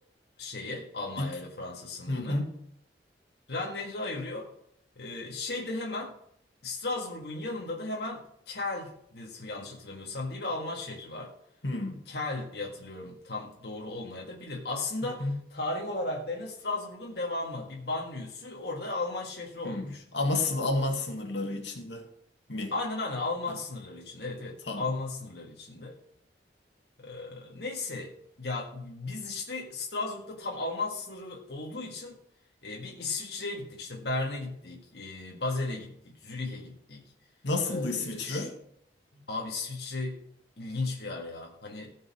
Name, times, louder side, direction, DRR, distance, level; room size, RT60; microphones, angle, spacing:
voice 1, 0.4-2.4 3.5-4.5 5.0-6.2 6.6-11.3 12.1-20.0 22.7-26.0 27.0-32.2 32.6-37.0 37.7-38.5 39.1-40.3 40.6-41.9, left 2 dB, 65° left, -1 dB, 1.8 m, -35 dB
voice 2, 2.1-2.5 11.6-12.0 15.0-15.4 19.6-22.1 22.5-22.7 24.7-24.9 37.4-38.5, left 2 dB, 85° left, 3 dB, 2.1 m, -31 dB
15.0 x 5.4 x 6.2 m, 0.69 s
head